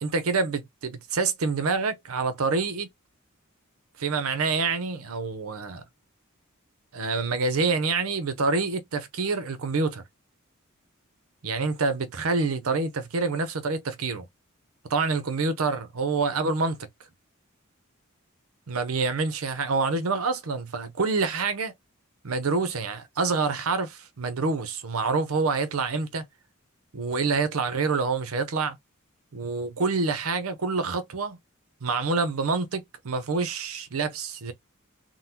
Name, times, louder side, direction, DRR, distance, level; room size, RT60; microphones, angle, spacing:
voice 1, 0.0-2.9 4.0-5.8 6.9-10.0 11.4-14.3 14.9-16.8 18.7-21.7 22.2-26.2 26.9-28.8 29.3-31.4 31.8-34.5, right 4 dB, 85° right, 0.7 m, -27 dB
3.8 x 2.1 x 2.8 m
head